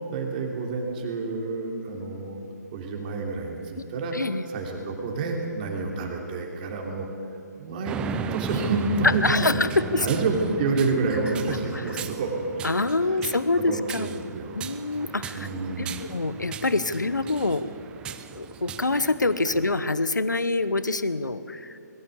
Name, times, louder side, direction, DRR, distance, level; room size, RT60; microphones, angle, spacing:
voice 1, 0.1-2.4 2.7-4.1 4.5-7.1 7.6-8.0 8.3-9.3 10.0-12.3 13.0-13.2 13.5-14.7 15.3-16.1 19.5-19.6, right 3 dB, 30° right, 1 dB, 3.3 m, -29 dB
voice 2, 4.1-4.4 9.2-10.1 12.6-14.1 14.5-15.5 15.8-17.7 18.3-21.8, left 2 dB, 80° left, 13 dB, 1.0 m, -26 dB
sound 1, 7.8-19.9, right 7 dB, 10° right, 0.6 m, -37 dB
21.5 x 14.5 x 8.4 m, 2.9 s
figure-of-eight pair, 140°, 10 cm